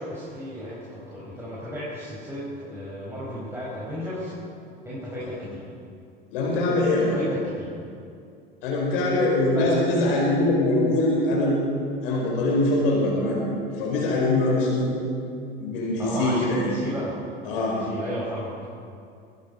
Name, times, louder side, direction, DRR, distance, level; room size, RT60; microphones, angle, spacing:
voice 1, 0.0-4.3 4.8-5.6 7.1-7.7 9.5-9.8 16.0-17.2 17.4-18.5, equal, 10° right, -7 dB, 4.8 m, -33 dB
voice 2, 6.3-7.1 8.6-11.6 12.0-13.4 13.8-14.9 15.6-16.6 17.4-17.8, left 2 dB, 65° left, -3 dB, 5.1 m, -23 dB
23.5 x 11.0 x 5.3 m, 2.4 s
figure-of-eight pair, 75°, 30 cm